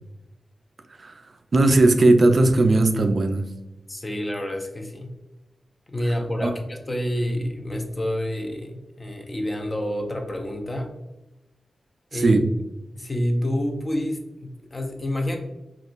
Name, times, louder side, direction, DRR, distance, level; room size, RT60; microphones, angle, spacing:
voice 1, 1.5-3.4 6.4-6.5 12.1-12.5, right 2 dB, 55° right, 7 dB, 0.3 m, -18 dB
voice 2, 3.9-5.1 5.9-10.9 12.1-12.4 13.0-15.4, equal, 30° left, 4 dB, 0.5 m, -28 dB
3.5 x 2.3 x 2.4 m, 0.99 s
cardioid pair, 70°, 0 cm